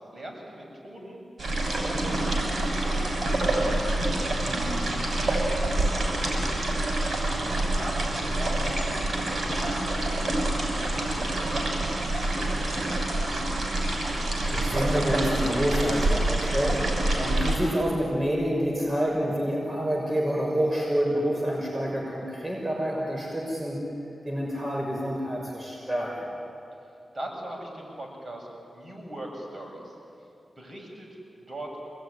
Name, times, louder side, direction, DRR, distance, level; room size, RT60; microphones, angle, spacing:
voice 1, 0.0-3.8 5.3-6.9 7.2-10.3 11.0-12.0 12.3-13.3 27.1-29.9 30.6-31.1 31.4-31.8, right 1 dB, 35° right, 0 dB, 7.6 m, -41 dB
sound 1, 1.4-17.6, right 1 dB, 55° right, 6.7 m, -27 dB
voice 2, 3.5-4.0 4.4-4.9 14.5-16.9 17.2-23.8 24.2-26.1, equal, 15° right, -2 dB, 6.1 m, -28 dB
27.0 x 20.0 x 10.0 m, 2.6 s
cardioid pair, 60°, 0 cm